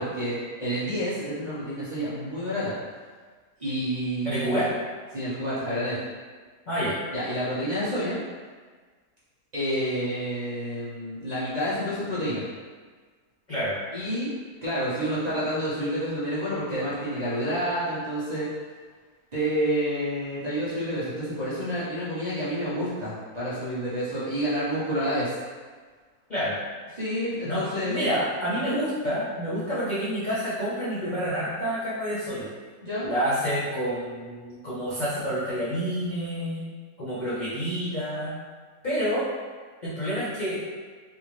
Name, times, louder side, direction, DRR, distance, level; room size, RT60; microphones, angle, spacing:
voice 1, 0.0-2.7 3.6-4.7 5.1-6.0 7.1-8.2 9.5-12.4 13.9-14.3 14.6-18.5 19.3-25.3 26.9-28.1 28.6-28.8 32.8-33.1, equal, 35° right, -11 dB, 0.7 m, -29 dB
voice 2, 4.2-4.7 6.7-7.0 13.5-13.8 26.3-26.6 27.4-32.5 33.0-36.6 37.0-38.3 38.8-39.3 39.8-40.6, equal, 60° left, -10 dB, 0.4 m, -28 dB
3.3 x 2.6 x 3.1 m, 1.5 s
omnidirectional pair, 1.7 m